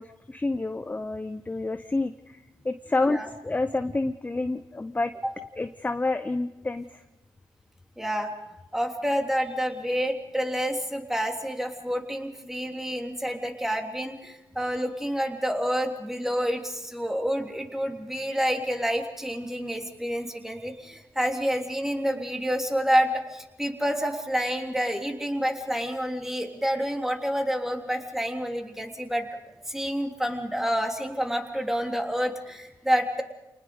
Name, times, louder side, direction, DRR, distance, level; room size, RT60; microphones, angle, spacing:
voice 1, 0.0-3.2 3.4-5.1 5.5-7.0, left 2 dB, 20° left, 9 dB, 0.8 m, -29 dB
voice 2, 8.0-8.3 8.7-29.3 29.7-33.2, equal, 5° right, 3 dB, 3.4 m, -28 dB
28.0 x 20.0 x 5.2 m, 0.97 s
cardioid pair, 65°, 8 cm